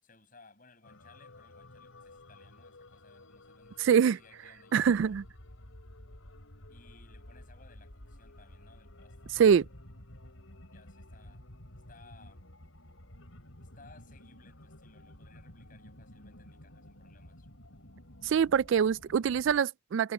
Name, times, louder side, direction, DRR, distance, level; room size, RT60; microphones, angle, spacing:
voice 1, 0.0-5.2 6.7-9.4 10.7-11.5 11.9-12.5 13.6-17.5, left 3 dB, 40° left, 6.2 m, -61 dB
sound 1, 0.8-19.6, left 1 dB, 85° left, 4.4 m, -52 dB
voice 2, 3.8-4.2 4.7-5.2 9.3-9.7 18.2-20.1, right 7 dB, 65° right, 0.3 m, -24 dB
head